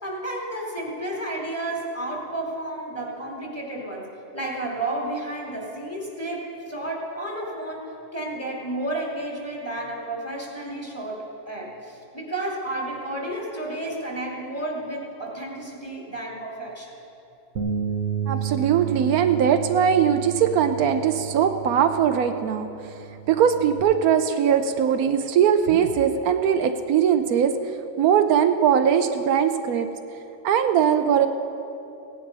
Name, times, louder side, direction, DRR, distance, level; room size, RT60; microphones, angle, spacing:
voice 1, 0.0-4.1 4.3-16.9, right 1 dB, 10° left, -4 dB, 2.8 m, -32 dB
Bass guitar, 17.6-23.8, right 8 dB, 60° right, 1.3 m, -32 dB
voice 2, 18.3-22.7 23.3-27.5 28.0-29.9 30.4-31.3, right 8 dB, 80° right, 8 dB, 1.1 m, -20 dB
17.0 x 10.5 x 5.4 m, 2.9 s
omnidirectional pair, 1.5 m